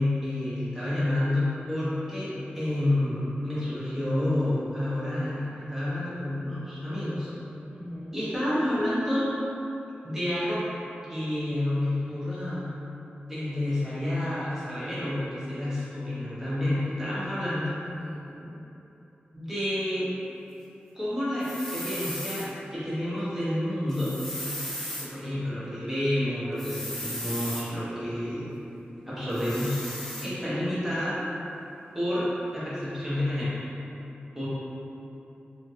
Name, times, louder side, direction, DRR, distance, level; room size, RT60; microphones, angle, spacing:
voice 1, 0.0-7.3 8.1-9.3 10.0-10.6 11.1-12.7 13.3-17.7 19.3-20.1 20.9-24.1 25.0-28.5 29.1-29.8 30.2-31.2 31.9-32.3 32.5-33.5 34.3-34.5, left 1 dB, 10° right, -11 dB, 1.2 m, -29 dB
voice 2, 7.7-8.2 17.8-18.5 25.3-25.7, equal, 40° right, -11 dB, 0.7 m, -43 dB
sound 1, 21.4-22.5 23.9-25.1 26.6-27.7 29.3-30.3, equal, 10° left, 0.6 m, -36 dB
3.2 x 2.8 x 3.2 m, 2.9 s
wide cardioid pair, 100°, 4 cm